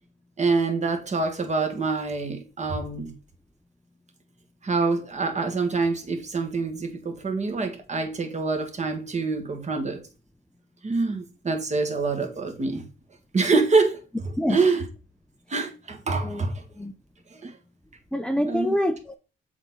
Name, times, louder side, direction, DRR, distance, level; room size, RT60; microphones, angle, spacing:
voice 1, 0.4-3.2 4.6-10.0 10.8-12.9 13.3-14.0 14.5-14.8 15.5-16.6 17.3-17.5 18.5-18.7, right 4 dB, 35° right, 1.7 m, -25 dB
voice 2, 18.1-19.2, equal, 5° left, 0.7 m, -26 dB
7.1 x 4.3 x 3.9 m
cardioid pair, 90°, 20 cm